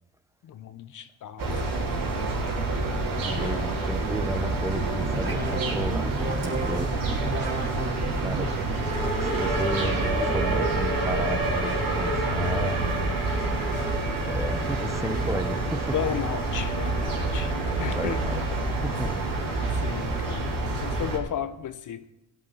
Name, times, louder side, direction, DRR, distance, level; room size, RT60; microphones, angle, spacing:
voice 1, 0.4-1.5 3.4-3.7 13.7-14.0 15.9-18.2 19.5-22.0, left 9 dB, 50° left, 1.0 m, -34 dB
sound 1, 1.4-21.2, right 2 dB, 55° right, 3.7 m, -27 dB
voice 2, 3.2-7.0 8.2-8.7 9.2-12.8 14.3-15.9 17.9-18.4 18.8-19.3, right 1 dB, 5° right, 1.0 m, -33 dB
sound 2, 4.5-10.8, right 2 dB, 25° right, 3.7 m, -34 dB
16.5 x 9.7 x 4.2 m
supercardioid pair, 75°, 39 cm